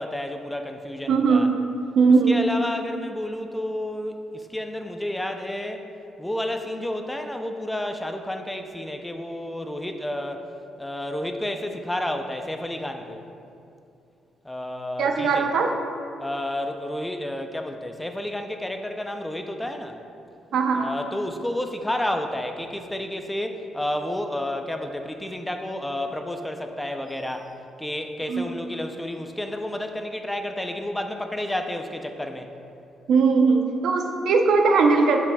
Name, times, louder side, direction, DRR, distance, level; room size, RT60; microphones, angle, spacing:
voice 1, 0.0-1.5 2.3-5.8 6.2-10.5 10.8-13.2 14.4-15.5 16.2-20.0 20.8-32.5, left 1 dB, 10° left, 5 dB, 0.5 m, -31 dB
voice 2, 1.1-2.5 15.0-15.8 20.5-20.9 28.3-28.5 33.1-35.2, right 4 dB, 75° right, 4 dB, 0.6 m, -20 dB
11.0 x 6.0 x 2.3 m, 2.5 s
cardioid pair, 90°, 0 cm